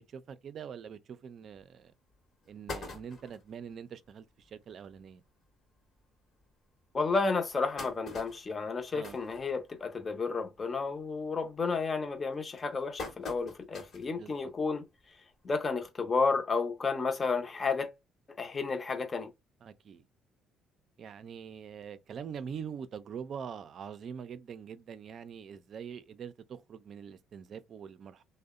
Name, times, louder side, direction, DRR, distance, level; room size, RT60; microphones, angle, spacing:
voice 1, 0.0-1.9 2.5-5.2 8.9-9.2 14.0-14.5 19.6-20.0 21.0-28.2, right 7 dB, 55° right, 0.4 m, -44 dB
sound 1, 1.6-1.7 2.1-2.2 2.4-3.5 4.1-4.2 4.4-4.5 4.9-5.0 5.8-5.9 6.4-6.5 7.2-10.1 10.4-10.8 11.1-11.5 12.1-14.1 14.6-14.7 15.9-16.0, left 3 dB, 55° left, 1.0 m, -44 dB
voice 2, 6.9-14.8 15.4-17.9 18.4-19.3, left 4 dB, 35° left, 0.7 m, -32 dB
2.7 x 2.0 x 2.3 m
supercardioid pair, 65°, 0 cm